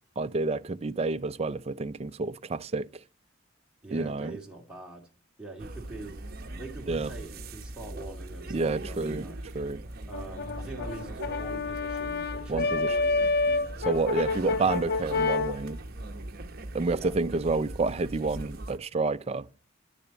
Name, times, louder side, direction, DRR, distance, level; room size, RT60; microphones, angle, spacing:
voice 1, 0.2-2.9 3.9-4.3 6.9-7.1 8.5-9.2 9.5-9.8 12.5-12.9 13.8-15.8 16.7-19.5, right 3 dB, 30° right, 0.4 m, -29 dB
voice 2, 3.8-5.0 5.4-6.2 6.5-9.7 10.1-13.7 16.8-17.2, right 2 dB, 5° right, 2.3 m, -44 dB
sound 1, 5.6-18.8, right 1 dB, 50° right, 0.9 m, -41 dB
Brass instrument, 10.1-15.6, left 3 dB, 50° left, 0.4 m, -28 dB
10.0 x 7.1 x 7.0 m
head